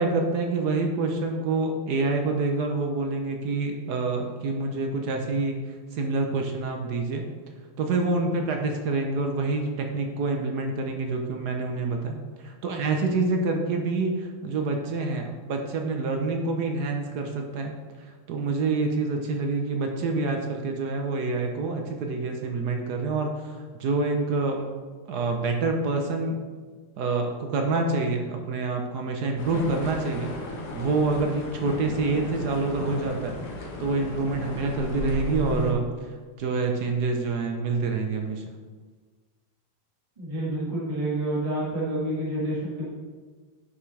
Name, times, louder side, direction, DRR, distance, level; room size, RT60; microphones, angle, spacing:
voice 1, 0.0-5.6 5.9-7.3 7.8-17.8 18.3-24.6 25.1-26.4 27.0-33.3 33.8-35.9 36.4-38.4, right 3 dB, 65° right, 3 dB, 1.2 m, -27 dB
sound 1, 29.4-35.7, left 2 dB, 55° left, 1.5 m, -35 dB
voice 2, 40.2-42.8, right 1 dB, 20° right, -6 dB, 1.6 m, -28 dB
9.7 x 5.9 x 3.3 m, 1.5 s
omnidirectional pair, 2.2 m